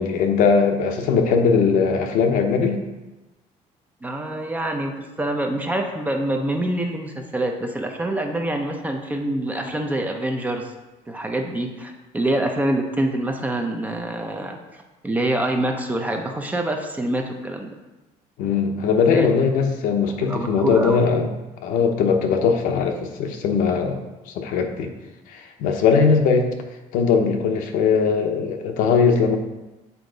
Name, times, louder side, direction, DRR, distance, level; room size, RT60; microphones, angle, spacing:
voice 1, 0.0-2.8 18.4-21.3 21.6-24.0 24.3-24.9 25.3-26.5 26.9-29.4, left 5 dB, 80° left, 4 dB, 0.8 m, -20 dB
voice 2, 4.0-10.7 11.1-14.6 15.0-17.7 19.1-19.3 20.2-21.0, right 1 dB, 10° right, 3 dB, 0.5 m, -25 dB
7.0 x 4.6 x 3.9 m, 1.1 s
cardioid pair, 165°, 14 cm